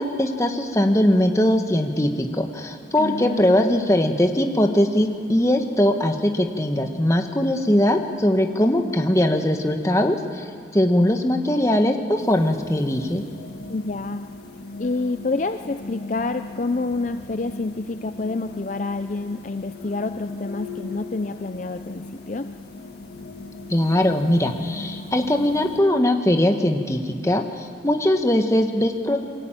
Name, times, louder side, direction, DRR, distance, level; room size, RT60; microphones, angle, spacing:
voice 1, 0.0-10.5 10.7-13.2 23.7-29.2, left 1 dB, 15° left, 4 dB, 1.3 m, -20 dB
voice 2, 3.0-3.8 13.7-14.3 14.8-22.5, left 3 dB, 40° left, 8 dB, 0.5 m, -28 dB
sound 1, 12.2-25.8, left 3 dB, 60° left, 1.8 m, -38 dB
23.5 x 15.0 x 9.0 m, 2.2 s
head